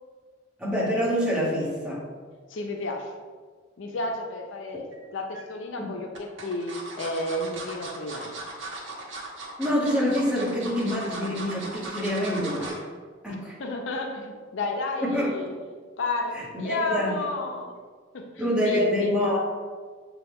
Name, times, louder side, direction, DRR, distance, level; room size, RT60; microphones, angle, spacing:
voice 1, 0.6-2.0 5.8-5.9 9.6-12.7 13.2-13.5 15.0-15.5 16.3-17.2 18.4-19.4, equal, 5° right, -7 dB, 1.3 m, -26 dB
voice 2, 2.5-3.1 3.8-4.9 5.1-8.3 13.3-15.5 16.0-17.7 18.1-19.1, left 2 dB, 70° left, 3 dB, 0.5 m, -32 dB
sound 1, 4.9-5.4 6.1-12.9 13.3-13.5 13.8-13.9, right 2 dB, 75° right, 0.9 m, -38 dB
6.7 x 2.3 x 3.5 m, 1.6 s
head